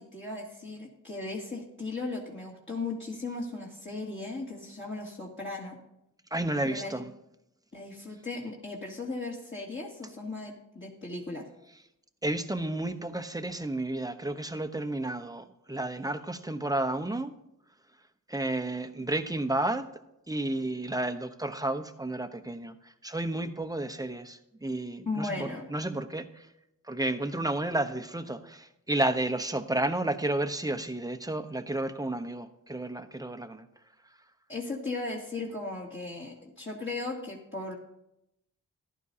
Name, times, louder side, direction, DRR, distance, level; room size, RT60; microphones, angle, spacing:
voice 1, 0.0-5.8 6.6-7.0 7.7-11.4 25.0-25.7 34.5-37.7, left 3 dB, 30° left, -5 dB, 2.5 m, -37 dB
voice 2, 6.3-7.1 12.2-17.3 18.3-19.9 20.3-22.7 23.0-26.5 26.9-33.7, right 1 dB, 10° right, 9 dB, 0.9 m, -31 dB
14.5 x 11.0 x 2.8 m, 0.84 s
cardioid pair, 55°, 36 cm